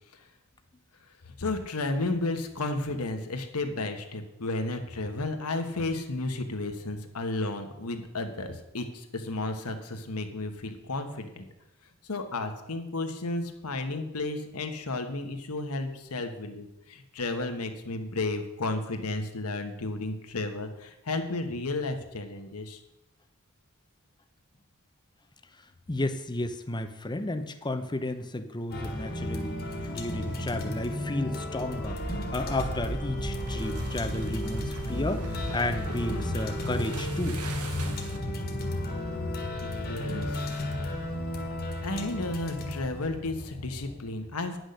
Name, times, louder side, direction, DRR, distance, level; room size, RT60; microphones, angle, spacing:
voice 1, 1.2-11.5 12.0-22.8 39.6-40.6 41.8-44.6, left 2 dB, 80° left, 6 dB, 1.3 m, -33 dB
voice 2, 25.9-37.4, left 1 dB, 20° left, 8 dB, 0.7 m, -33 dB
sound 1, 28.7-44.0, left 1 dB, 45° left, 1.7 m, -34 dB
sound 2, 31.5-38.3, right 1 dB, 90° right, 1.4 m, -37 dB
9.9 x 6.3 x 6.6 m, 0.88 s
head